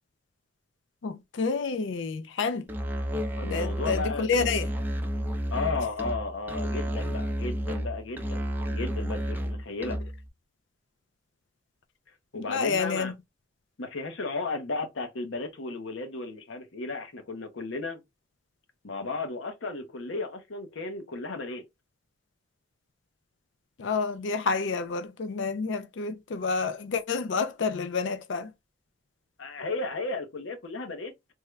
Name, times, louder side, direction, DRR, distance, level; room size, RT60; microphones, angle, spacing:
voice 1, 1.0-2.7 3.4-4.7 12.3-13.1 23.8-28.5, left 4 dB, 70° left, 0.4 m, -29 dB
Musical instrument, 2.7-10.3, equal, 10° right, 0.5 m, -31 dB
voice 2, 3.4-4.5 5.5-10.0 12.3-13.1 13.8-18.0 18.8-21.6 29.4-31.1, left 3 dB, 85° left, 0.8 m, -34 dB
3.6 x 2.2 x 3.1 m
head